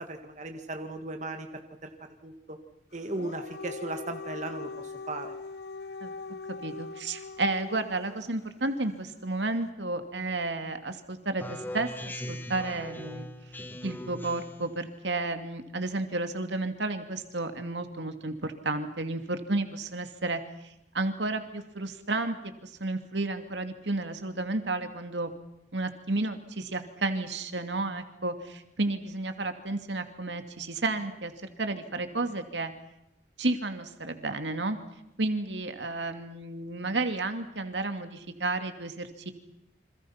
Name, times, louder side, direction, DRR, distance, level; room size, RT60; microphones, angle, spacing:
voice 1, 0.0-1.5 1.8-1.9 2.2-2.6 2.9-5.3, right 2 dB, 40° right, 5 dB, 2.0 m, -37 dB
Dog, 3.0-8.2, left 4 dB, 65° left, 1.1 m, -41 dB
voice 2, 6.5-13.3 13.8-25.3 25.7-31.3 31.6-32.7 33.4-34.8 35.2-39.3, right 2 dB, 80° right, 7 dB, 2.5 m, -32 dB
Speech synthesizer, 11.4-14.7, left 1 dB, 10° left, 1.5 m, -39 dB
29.0 x 26.5 x 5.9 m, 0.85 s
head